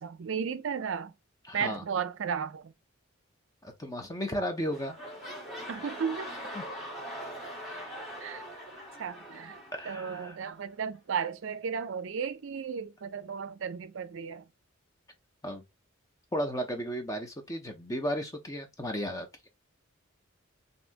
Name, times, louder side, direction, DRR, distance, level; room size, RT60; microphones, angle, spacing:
voice 1, 0.0-1.1 1.5-2.7 5.7-6.3 8.2-8.5 9.0-9.6 9.9-14.5, right 6 dB, 65° right, 0.4 m, -34 dB
voice 2, 1.5-1.8 3.6-5.0 6.6-6.7 9.7-10.3 15.4-15.6 16.3-19.3, equal, 15° left, 0.5 m, -34 dB
sound 1, 4.1-4.4 4.7-10.5 11.2-11.3, equal, ahead, 1.1 m, -42 dB
3.3 x 2.7 x 2.5 m
head